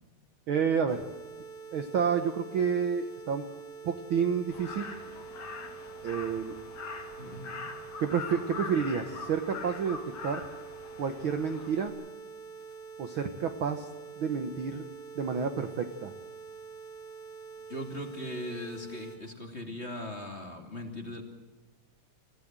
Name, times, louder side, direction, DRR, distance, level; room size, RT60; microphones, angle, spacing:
voice 1, 0.5-1.0 1.7-3.5 3.8-4.9 6.0-6.6 8.0-10.4 11.0-11.9 13.0-13.9 14.2-14.9 15.1-16.1, right 6 dB, 75° right, 7 dB, 1.1 m, -30 dB
sound 1, 0.9-19.2, right 5 dB, 85° left, 7.7 m, -46 dB
Crow, 4.5-11.9, left 4 dB, 50° left, 3.8 m, -43 dB
voice 2, 7.2-7.7 17.7-21.2, left 1 dB, 20° left, 3 dB, 2.3 m, -39 dB
28.0 x 16.0 x 7.6 m, 1.2 s
omnidirectional pair, 4.0 m